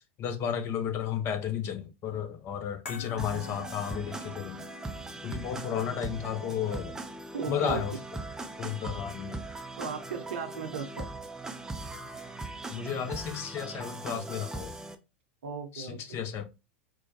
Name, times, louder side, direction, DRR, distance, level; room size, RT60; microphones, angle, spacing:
voice 1, 0.2-4.7 5.2-6.9 7.5-7.9 8.6-9.4 12.7-14.7 15.7-16.4, left 8 dB, 40° left, 0.7 m, -33 dB
sound 1, 2.9-9.3 9.5-9.7, left 5 dB, 60° left, 1.6 m, -49 dB
sound 2, 3.2-15.0, right 2 dB, 10° right, 0.5 m, -40 dB
voice 2, 7.3-8.0 9.8-11.1 15.4-16.2, right 6 dB, 70° right, 0.7 m, -37 dB
4.5 x 2.1 x 2.8 m
hypercardioid pair, 90°, 7 cm